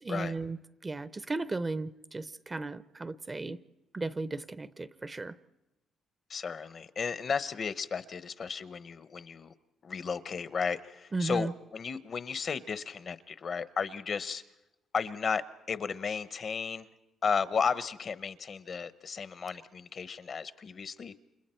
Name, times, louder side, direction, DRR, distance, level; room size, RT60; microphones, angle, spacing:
voice 1, 0.0-0.6 0.8-3.6 3.9-5.4 11.1-11.5, right 3 dB, 25° right, 15 dB, 0.7 m, -35 dB
voice 2, 6.3-9.5 9.8-14.4 14.9-16.9 17.2-21.2, left 6 dB, 50° left, 14 dB, 0.9 m, -34 dB
29.0 x 27.0 x 4.5 m, 0.96 s
cardioid pair, 90°, 0 cm